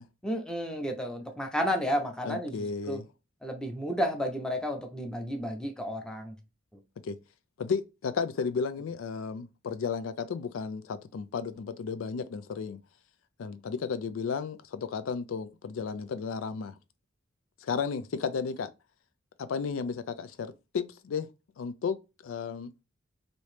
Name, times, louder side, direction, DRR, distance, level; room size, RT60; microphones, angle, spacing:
voice 1, 0.2-3.0 3.4-6.3, equal, 5° left, 0.6 m, -32 dB
voice 2, 2.2-3.0 7.0-7.2 7.6-12.8 13.4-16.8 17.6-18.7 19.4-21.3 21.6-22.0 22.2-22.7, left 5 dB, 90° left, 0.4 m, -33 dB
3.0 x 2.7 x 3.2 m
head